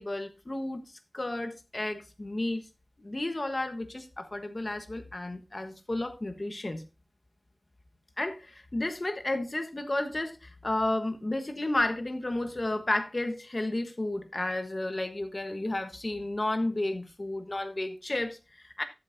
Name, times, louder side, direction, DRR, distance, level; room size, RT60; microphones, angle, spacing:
voice 1, 0.0-2.7 3.0-6.8 8.2-18.8, left 1 dB, 40° left, 1.2 m, -32 dB
13.0 x 7.7 x 2.7 m
wide cardioid pair, 75°, 0 cm